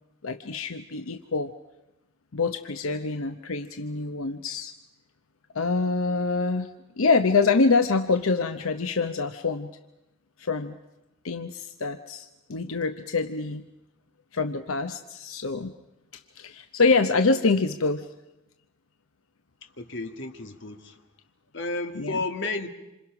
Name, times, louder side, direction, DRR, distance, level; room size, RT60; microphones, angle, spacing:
voice 1, 0.2-1.5 2.3-4.7 5.5-6.7 7.0-9.7 10.4-10.8 11.2-13.6 14.3-15.7 16.4-18.1 22.0-22.2, left 4 dB, 85° left, 8 dB, 0.8 m, -25 dB
voice 2, 19.6-21.0 21.5-22.7, left 3 dB, 60° left, 6 dB, 1.8 m, -32 dB
27.0 x 26.5 x 6.0 m, 0.97 s
head